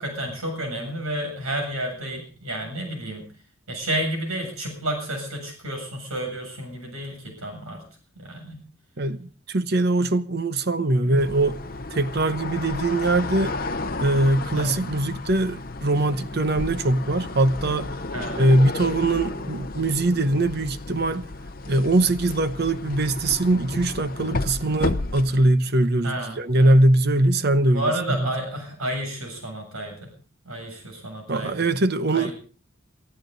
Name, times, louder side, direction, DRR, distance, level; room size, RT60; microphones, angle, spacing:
voice 1, 0.0-3.3 3.7-7.8 8.2-8.6 11.0-11.2 14.5-14.7 18.1-18.4 24.6-24.8 26.0-26.7 27.7-30.0 30.4-31.5 32.1-32.3, right 1 dB, 80° right, 7.6 m, -31 dB
voice 2, 9.0-11.6 11.9-13.6 14.0-17.9 18.4-21.2 21.7-28.3 31.3-32.3, right 2 dB, 45° right, 0.9 m, -22 dB
sound 1, 11.2-25.5, left 2 dB, 40° left, 0.7 m, -32 dB
23.0 x 14.0 x 4.0 m
head